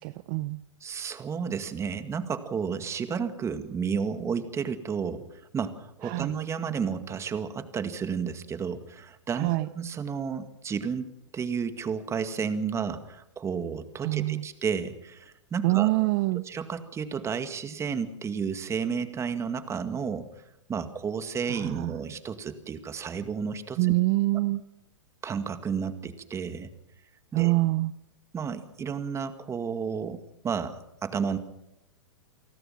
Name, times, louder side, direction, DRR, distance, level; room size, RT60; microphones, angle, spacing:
voice 1, 0.0-0.6 6.0-6.4 9.3-9.7 14.0-14.5 15.6-16.4 21.5-21.9 23.8-24.6 27.3-27.9, right 21 dB, 45° right, 15 dB, 0.7 m, -25 dB
voice 2, 0.8-11.1 11.3-15.9 16.5-20.3 20.7-23.9 25.2-26.7 27.3-27.5 28.3-31.4, right 6 dB, 20° right, 10 dB, 2.0 m, -32 dB
29.0 x 19.5 x 5.9 m, 0.85 s
hypercardioid pair, 125°, 16 cm